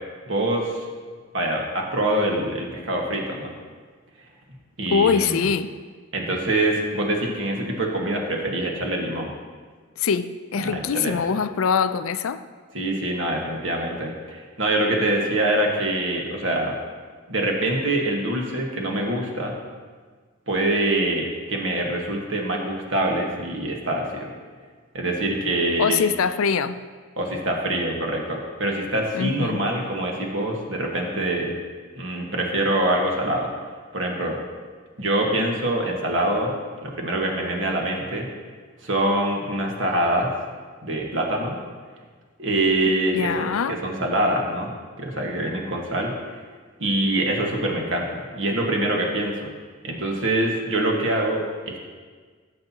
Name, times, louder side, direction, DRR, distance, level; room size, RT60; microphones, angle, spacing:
voice 1, 0.3-0.9 1.3-3.5 4.8-5.4 6.1-9.3 10.6-11.2 12.7-16.8 17.3-19.5 20.5-24.3 24.9-26.0 27.2-31.5 31.9-33.5 33.9-34.4 35.0-36.5 36.8-38.3 38.8-40.3 40.8-41.6 42.4-44.7 45.0-46.1 46.8-49.5 49.8-51.8, right 1 dB, 60° right, 0 dB, 1.6 m, -24 dB
voice 2, 4.9-5.7 10.0-12.4 25.8-26.8 29.1-29.6 43.1-43.8, left 6 dB, 80° left, 12 dB, 0.4 m, -23 dB
16.0 x 7.8 x 2.9 m, 1.5 s
head